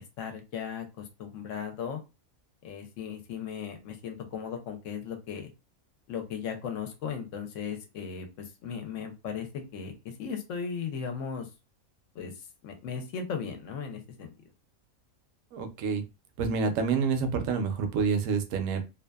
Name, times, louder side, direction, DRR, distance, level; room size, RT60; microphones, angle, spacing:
voice 1, 0.0-2.0 2.6-5.5 6.1-11.5 12.1-12.3 12.6-14.3, left 6 dB, 70° left, 5 dB, 0.9 m, -37 dB
voice 2, 15.5-16.0 16.4-18.8, right 5 dB, 70° right, 7 dB, 0.9 m, -28 dB
2.6 x 2.3 x 2.2 m, 0.27 s
omnidirectional pair, 1.5 m